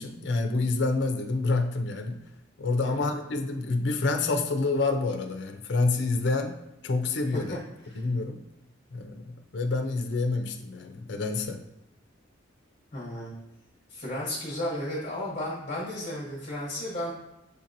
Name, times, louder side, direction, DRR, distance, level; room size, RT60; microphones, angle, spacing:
voice 1, 0.0-2.2 2.6-6.6 6.8-7.6 8.0-8.4 8.9-11.6, left 3 dB, 60° left, 6 dB, 0.4 m, -28 dB
voice 2, 2.8-3.1 7.9-8.0 12.9-13.3 13.9-17.1, left 1 dB, 35° left, -5 dB, 0.9 m, -34 dB
6.5 x 2.8 x 2.5 m, 0.89 s
head